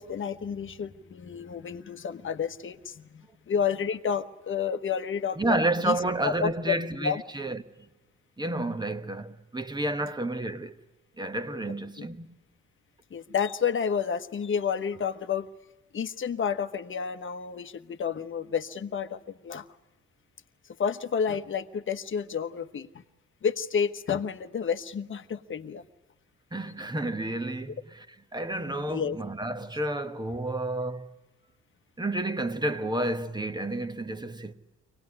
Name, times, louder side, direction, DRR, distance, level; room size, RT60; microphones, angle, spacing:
voice 1, 0.0-7.2 12.0-12.1 13.1-15.5 15.9-19.7 20.8-22.9 23.4-25.8 28.9-29.2, left 7 dB, 40° left, 1.1 m, -30 dB
voice 2, 5.4-7.9 8.4-10.7 11.2-12.4 26.5-28.0 28.3-31.1 32.0-34.5, right 1 dB, 15° right, 1.2 m, -30 dB
24.0 x 19.0 x 9.8 m
cardioid pair, 90°, 30 cm